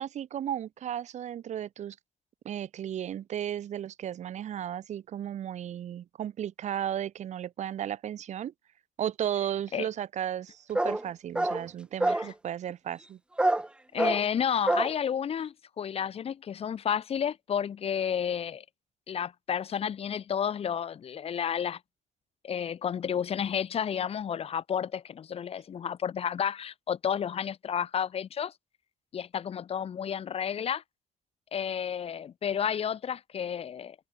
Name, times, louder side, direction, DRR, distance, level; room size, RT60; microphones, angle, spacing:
voice 1, 0.0-1.9 2.4-8.5 9.0-13.2, right 10 dB, 65° right, 1.4 m, -34 dB
sound 1, 10.7-11.1 11.3-11.7 12.0-12.3 13.4-13.7 14.0-14.2 14.7-14.9, right 2 dB, 10° right, 0.5 m, -26 dB
voice 2, 13.9-18.6 19.1-21.8 22.4-28.5 29.1-30.8 31.5-34.0, left 8 dB, 50° left, 3.6 m, -31 dB
wide cardioid pair, 180°, 13 cm